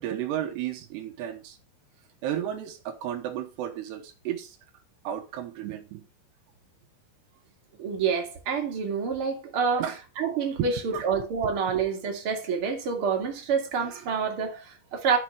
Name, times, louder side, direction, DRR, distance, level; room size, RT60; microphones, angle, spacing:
voice 1, 0.0-1.6 2.2-4.6 5.0-6.0 9.8-10.0 10.6-11.5 13.9-14.1, right 11 dB, 75° right, 2.9 m, -33 dB
voice 2, 7.8-9.9 10.2-15.2, right 6 dB, 45° right, 1.8 m, -27 dB
12.0 x 5.5 x 4.7 m
omnidirectional pair, 5.5 m